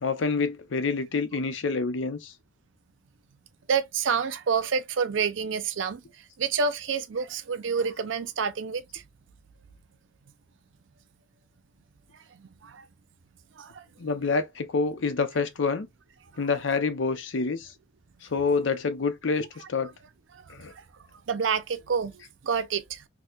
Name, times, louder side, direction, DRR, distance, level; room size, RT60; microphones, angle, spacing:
voice 1, 0.0-2.3 14.0-15.9 16.4-17.7 18.2-19.9 20.5-20.7, left 4 dB, 80° left, 0.6 m, -27 dB
voice 2, 3.7-6.0 6.4-9.0 12.3-12.8 13.6-13.8 20.3-20.8 21.3-23.1, right 6 dB, 85° right, 0.5 m, -28 dB
4.3 x 2.1 x 2.3 m
head